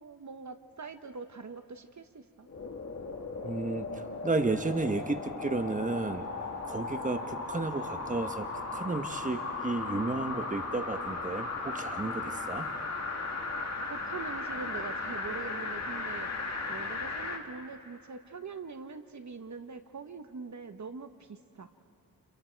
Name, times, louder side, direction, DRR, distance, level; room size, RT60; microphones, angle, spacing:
voice 1, 0.0-2.5 13.9-16.3 16.7-21.7, right 4 dB, 55° right, 8 dB, 1.2 m, -43 dB
sound 1, 2.5-17.4 17.9-18.0, left 3 dB, 50° left, 2.4 m, -36 dB
voice 2, 3.4-6.2 6.7-12.7, right 3 dB, 20° right, 8 dB, 1.1 m, -33 dB
30.0 x 29.0 x 4.6 m, 2.7 s
wide cardioid pair, 80°, 35 cm